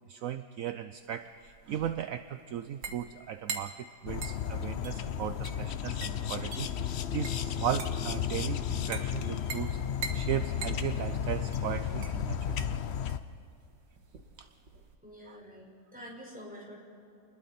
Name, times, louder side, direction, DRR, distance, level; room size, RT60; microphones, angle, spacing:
voice 1, 0.1-9.8 10.1-12.7 14.4-14.5 15.3-15.4, right 10 dB, 65° right, 10 dB, 0.8 m, -36 dB
sound 1, 1.0-15.0, right 5 dB, 85° right, 2.1 m, -44 dB
sound 2, 4.1-13.2, left 9 dB, 65° left, 0.6 m, -33 dB
voice 2, 15.0-16.8, equal, 5° right, -2 dB, 5.2 m, -47 dB
29.0 x 21.0 x 4.3 m, 2.7 s
omnidirectional pair, 1.9 m